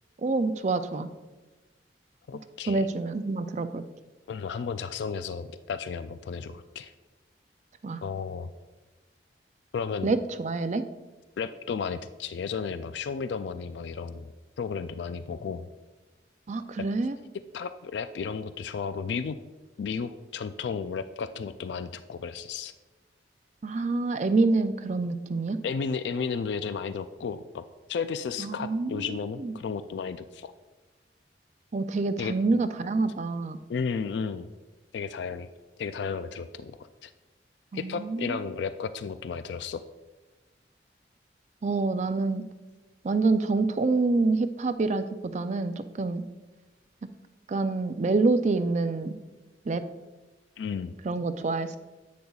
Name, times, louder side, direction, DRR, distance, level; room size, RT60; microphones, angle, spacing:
voice 1, 0.2-1.1 2.7-3.8 7.8-8.0 10.0-10.8 16.5-17.2 23.6-25.6 28.4-29.5 31.7-33.6 37.7-38.4 41.6-42.4 43.0-46.2 47.5-49.2 49.7-49.8 51.0-51.7, right 3 dB, 40° right, 10 dB, 0.4 m, -27 dB
voice 2, 2.3-2.8 4.3-6.9 8.0-8.5 9.7-10.1 11.4-14.3 14.6-15.6 17.5-19.4 19.8-22.7 25.6-27.6 27.9-30.5 32.2-32.3 33.7-34.5 34.9-35.5 35.8-37.1 37.7-39.8 50.6-50.9, left 5 dB, 75° left, 11 dB, 0.3 m, -33 dB
10.0 x 8.5 x 2.3 m, 1.2 s
head